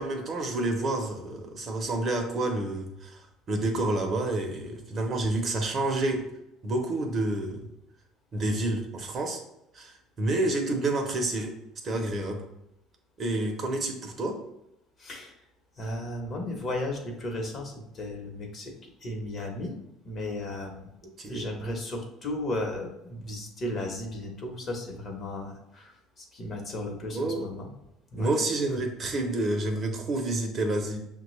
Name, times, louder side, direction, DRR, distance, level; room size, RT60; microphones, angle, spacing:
voice 1, 0.0-3.2 3.5-6.3 6.6-7.7 8.3-9.4 9.7-11.6 11.8-12.4 13.2-14.4 21.0-21.5 27.1-27.5 28.2-31.0, right 2 dB, 35° right, 3 dB, 0.7 m, -29 dB
voice 2, 15.0-15.3 15.8-18.7 19.0-19.7 20.0-20.9 21.3-27.7 28.1-28.3, left 1 dB, 40° left, 2 dB, 0.9 m, -35 dB
6.0 x 2.2 x 3.1 m, 0.83 s
cardioid pair, 125°, 0 cm